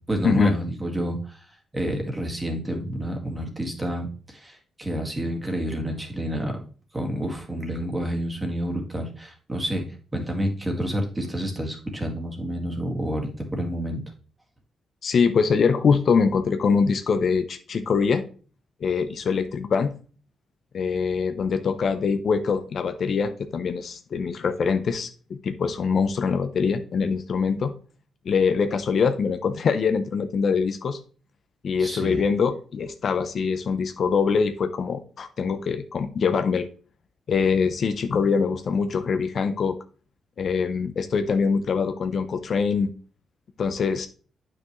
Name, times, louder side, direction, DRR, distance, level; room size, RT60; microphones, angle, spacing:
voice 1, 0.1-1.4 1.7-6.6 6.9-9.8 10.1-14.0 31.8-32.2, equal, 15° right, 2 dB, 1.9 m, -29 dB
voice 2, 15.0-18.3 18.8-19.9 20.7-27.7 28.3-31.0 31.6-36.7 37.3-39.8 40.4-42.9 43.6-44.1, left 5 dB, 50° left, 9 dB, 0.7 m, -23 dB
9.0 x 5.9 x 3.1 m, 0.39 s
cardioid pair, 120°, 0 cm